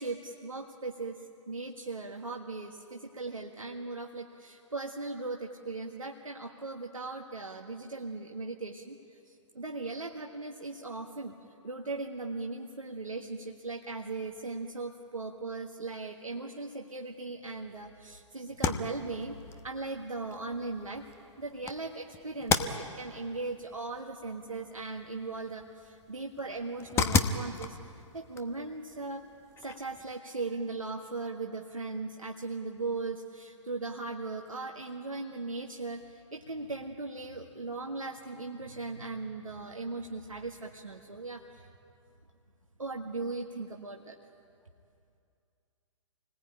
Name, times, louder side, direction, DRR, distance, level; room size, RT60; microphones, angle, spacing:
voice 1, 0.0-11.3 11.6-21.0 21.4-27.8 28.1-29.3 29.6-41.7 42.8-44.2, right 3 dB, 90° right, 1 dB, 1.6 m, -38 dB
sound 1, 18.5-30.1, left 6 dB, 15° left, 1.0 m, -36 dB
27.0 x 19.5 x 8.8 m, 2.5 s
figure-of-eight pair, 125°, 17 cm